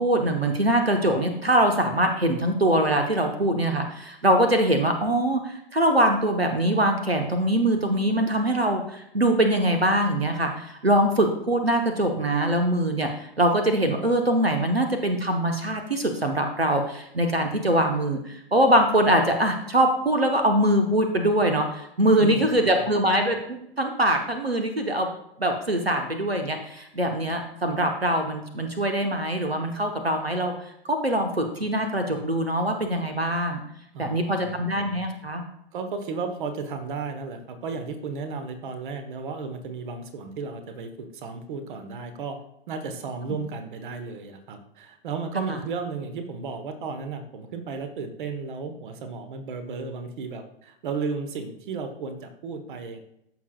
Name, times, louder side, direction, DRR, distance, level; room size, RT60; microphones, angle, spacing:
voice 1, 0.0-25.1 25.4-30.5 30.9-33.6 34.0-35.4 45.5-45.6, right 1 dB, 90° right, 5 dB, 1.0 m, -23 dB
voice 2, 22.2-23.0 33.9-34.7 35.7-42.4 42.7-53.0, right 4 dB, 55° right, 8 dB, 1.2 m, -34 dB
14.0 x 6.1 x 2.3 m, 0.78 s
figure-of-eight pair, 100°, 30 cm